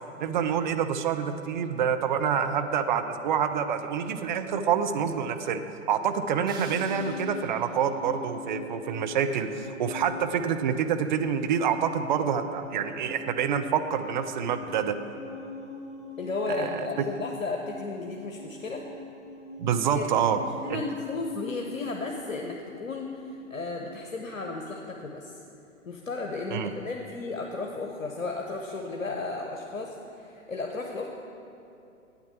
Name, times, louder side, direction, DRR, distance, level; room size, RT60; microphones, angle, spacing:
voice 1, 0.2-5.6 5.9-15.0 16.6-16.7 19.6-20.4 20.7-20.8 26.5-26.7, right 7 dB, 35° right, 7 dB, 0.6 m, -27 dB
sound 1, 6.5-9.4, right 2 dB, 10° right, 1.7 m, -51 dB
sound 2, 6.7-22.0, left 3 dB, 10° left, 1.8 m, -43 dB
voice 2, 16.2-18.8 19.9-20.0 20.4-25.4 25.8-31.1, left 3 dB, 70° left, 1 dB, 1.1 m, -34 dB
9.7 x 8.5 x 7.0 m, 2.7 s
figure-of-eight pair, 110°, 41 cm